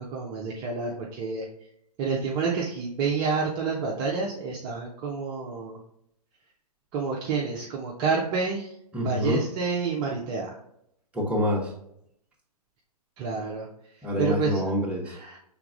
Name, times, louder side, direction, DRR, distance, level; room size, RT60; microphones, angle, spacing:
voice 1, 0.0-1.5 2.0-5.8 6.9-8.7 9.0-10.6 13.2-13.7 14.2-14.6 15.0-15.4, right 4 dB, 25° right, -2 dB, 0.6 m, -29 dB
voice 2, 8.9-9.4 11.1-11.7 14.0-15.2, equal, 5° right, -4 dB, 1.0 m, -26 dB
5.8 x 3.5 x 2.4 m, 0.75 s
figure-of-eight pair, 115°, 20 cm